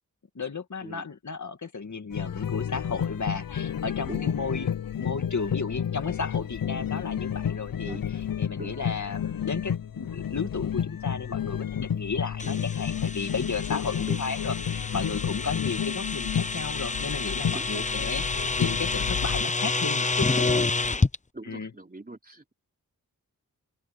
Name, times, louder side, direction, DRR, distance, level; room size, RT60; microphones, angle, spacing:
voice 1, 0.4-4.7 4.9-8.0 8.4-20.6 21.4-21.7, left 5 dB, 55° left, 2.2 m, -34 dB
sound 1, 2.1-19.4, left 8 dB, 70° left, 0.7 m, -31 dB
sound 2, 12.4-21.2, left 3 dB, 20° left, 0.7 m, -29 dB
voice 2, 17.5-17.9 21.3-22.5, right 2 dB, 25° right, 3.3 m, -42 dB
open air
wide cardioid pair, 60°, 35 cm